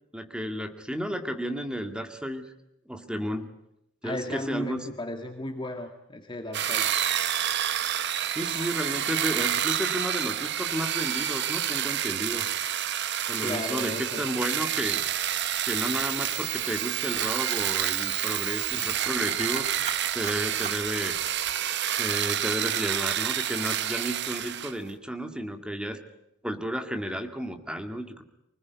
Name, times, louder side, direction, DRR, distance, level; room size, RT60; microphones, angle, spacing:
voice 1, 0.1-2.4 2.9-3.5 4.0-4.9 8.3-12.5 13.3-15.0 15.7-19.7 20.1-21.2 22.0-26.0 26.4-28.2, equal, 5° right, 6 dB, 2.2 m, -32 dB
voice 2, 4.0-6.9 13.4-14.3, left 1 dB, 25° left, 4 dB, 1.8 m, -35 dB
sound 1, 6.5-24.8, right 10 dB, 55° right, 1.0 m, -29 dB
Camera, 14.4-21.6, right 11 dB, 35° right, 1.2 m, -38 dB
25.0 x 20.0 x 9.6 m, 0.83 s
head